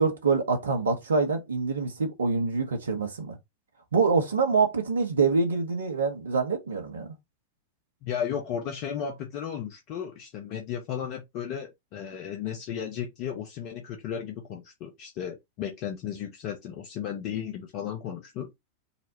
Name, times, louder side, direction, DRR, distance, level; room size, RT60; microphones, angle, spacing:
voice 1, 0.0-3.4 3.9-7.1, right 4 dB, 70° right, 1.1 m, -25 dB
voice 2, 8.0-18.5, left 8 dB, 45° left, 0.7 m, -34 dB
4.1 x 2.1 x 4.0 m
figure-of-eight pair, 90°, 0 cm